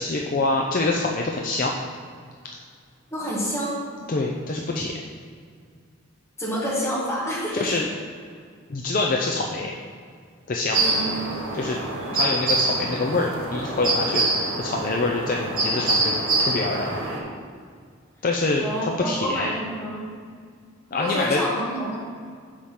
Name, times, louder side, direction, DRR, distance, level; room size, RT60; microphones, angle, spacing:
voice 1, 0.0-1.7 4.1-5.0 7.5-7.9 8.7-9.7 10.5-10.8 11.5-11.8 12.1-16.2 16.4-17.0 18.2-19.5 20.9-21.4, left 3 dB, 40° left, 0 dB, 0.5 m, -25 dB
voice 2, 3.1-3.9 6.4-7.7 10.8-11.1 18.6-20.1 21.0-22.0, equal, 15° left, -8 dB, 2.2 m, -28 dB
sound 1, 10.7-17.2, right 2 dB, 80° right, 1.6 m, -25 dB
7.1 x 4.9 x 5.7 m, 2.1 s
head